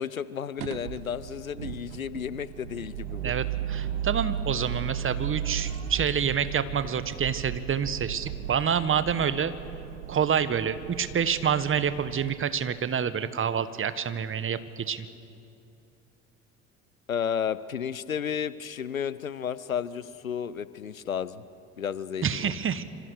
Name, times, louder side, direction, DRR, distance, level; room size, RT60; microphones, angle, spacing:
voice 1, 0.0-3.3 17.1-21.4 21.8-22.5, left 8 dB, 90° left, 17 dB, 0.7 m, -32 dB
sound 1, 0.6-12.3, right 10 dB, 70° right, 0.8 m, -35 dB
voice 2, 3.2-9.5 10.1-15.0 22.2-22.8, right 7 dB, 30° right, 13 dB, 1.5 m, -27 dB
26.5 x 26.0 x 6.6 m, 2.7 s
figure-of-eight pair, 60°, 40 cm